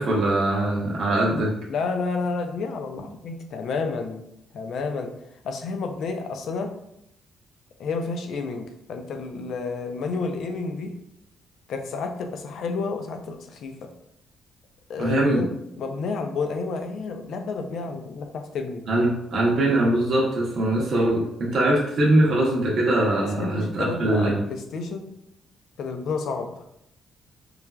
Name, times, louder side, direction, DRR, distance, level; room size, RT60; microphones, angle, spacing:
voice 1, 0.0-1.5 15.0-15.4 18.9-24.4, right 1 dB, 60° right, -4 dB, 0.7 m, -22 dB
voice 2, 1.7-4.2 4.5-5.1 5.4-6.7 7.8-11.0 11.7-13.7 14.9-18.8 23.4-25.1 25.8-26.6, left 4 dB, 70° left, 5 dB, 0.4 m, -30 dB
3.1 x 2.4 x 2.2 m, 0.79 s
cardioid pair, 90°, 0 cm